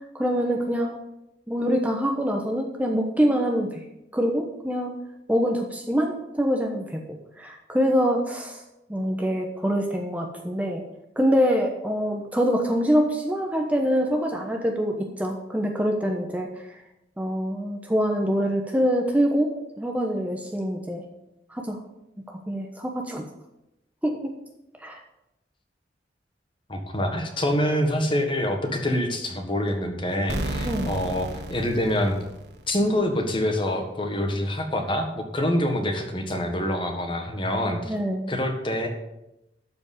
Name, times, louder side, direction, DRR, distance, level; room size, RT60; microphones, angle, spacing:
voice 1, 0.1-1.0 1.5-3.8 4.1-4.9 5.3-8.6 8.9-10.8 11.2-16.5 17.2-19.5 19.8-21.0 21.5-21.8 22.3-23.3 24.0-24.3 24.8-25.0 30.6-31.0 37.9-38.3, equal, 10° right, 2 dB, 1.0 m, -25 dB
voice 2, 26.7-32.2 32.7-37.9 38.3-38.9, left 1 dB, 30° left, 5 dB, 1.6 m, -26 dB
sound 1, 30.3-33.0, right 1 dB, 65° right, 1.4 m, -33 dB
12.5 x 5.2 x 8.3 m, 0.88 s
head